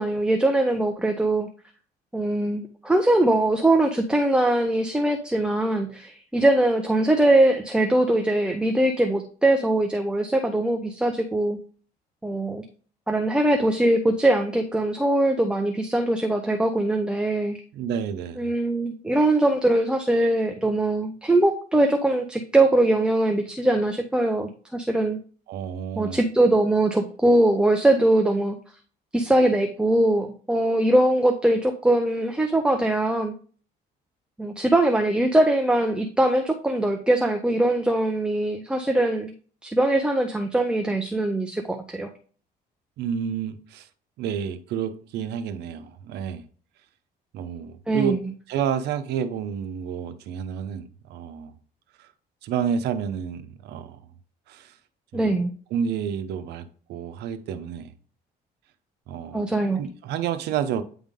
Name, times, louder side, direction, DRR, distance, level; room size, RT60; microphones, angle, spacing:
voice 1, 0.0-1.5 2.1-11.6 12.2-12.6 13.1-17.6 18.4-25.2 26.0-28.6 29.1-33.3 34.4-39.3 39.6-42.1 47.9-48.2 55.1-55.5 59.3-59.9, right 1 dB, 5° right, 0.6 m, -22 dB
voice 2, 17.7-18.5 25.5-26.2 43.0-43.9 44.2-46.4 47.3-48.1 48.5-51.5 52.0-52.1 52.4-54.0 54.5-54.7 55.1-55.3 55.7-57.9 59.1-59.5 59.7-60.8, right 8 dB, 80° right, 0.8 m, -29 dB
9.2 x 3.6 x 3.6 m
cardioid pair, 110°, 17 cm